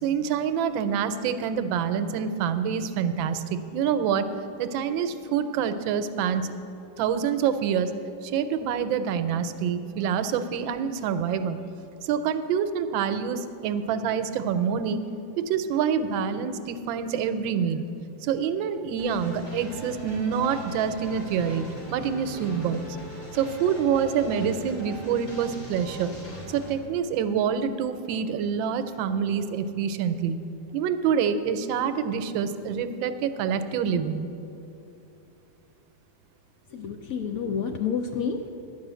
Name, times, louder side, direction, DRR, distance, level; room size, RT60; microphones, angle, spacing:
voice 1, 0.0-4.3 4.6-6.5 7.0-7.9 8.2-11.6 12.0-15.0 15.4-17.8 18.2-22.9 23.3-26.1 26.5-30.4 30.7-34.3, right 7 dB, 85° right, 10 dB, 1.3 m, -26 dB
sound 1, 19.0-26.7, equal, 55° left, 3.5 m, -40 dB
voice 2, 36.7-38.5, left 6 dB, 75° left, 5 dB, 0.8 m, -29 dB
11.0 x 5.5 x 8.0 m, 2.8 s
omnidirectional pair, 2.1 m